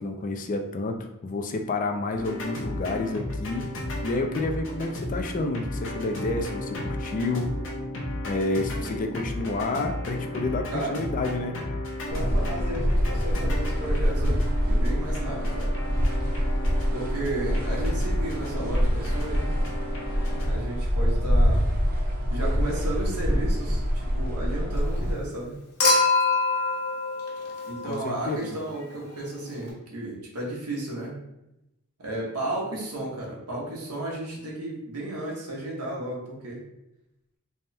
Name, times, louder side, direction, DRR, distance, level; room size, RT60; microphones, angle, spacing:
voice 1, 0.0-3.7 4.0-7.5 8.3-11.6 27.8-28.6, left 2 dB, 35° left, 5 dB, 0.4 m, -29 dB
sound 1, 2.1-20.5, left 1 dB, 60° left, 0.9 m, -34 dB
voice 2, 10.7-11.0 12.1-15.7 16.9-19.5 20.4-21.6 22.3-25.6 27.7-31.1 32.0-36.6, right 1 dB, 90° right, -3 dB, 1.2 m, -33 dB
sound 2, 12.1-25.1, equal, 40° right, 0.7 m, -25 dB
Human group actions / Chink clink / Liquid, 25.8-28.2 29.7-29.8, left 3 dB, 75° left, 1.1 m, -24 dB
3.4 x 2.2 x 4.1 m, 0.88 s
head